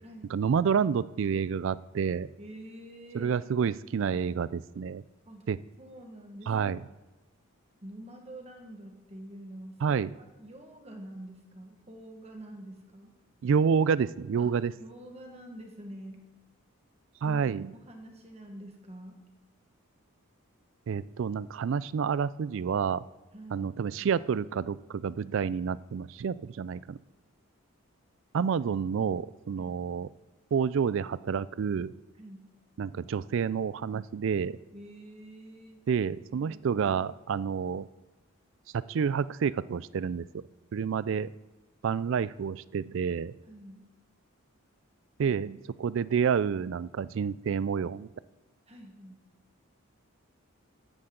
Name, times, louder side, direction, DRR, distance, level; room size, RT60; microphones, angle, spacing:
voice 1, 0.3-2.3 3.1-5.0 5.5-5.6 6.5-6.9 9.8-10.1 13.4-14.7 17.2-17.7 20.9-23.0 23.5-27.0 28.3-30.1 30.5-31.9 32.8-34.6 35.9-37.8 38.7-40.4 40.7-41.3 41.8-43.3 45.2-48.1, right 6 dB, 60° right, 19 dB, 0.3 m, -29 dB
voice 2, 2.4-3.3 5.3-5.5 5.8-6.7 7.8-13.1 14.4-14.5 14.8-16.2 17.2-19.2 23.3-23.7 29.6-29.8 32.2-32.5 34.7-35.8 41.0-41.3 43.5-43.9 48.7-49.2, right 1 dB, 30° right, 3 dB, 1.5 m, -47 dB
14.5 x 10.0 x 3.8 m, 1.2 s
head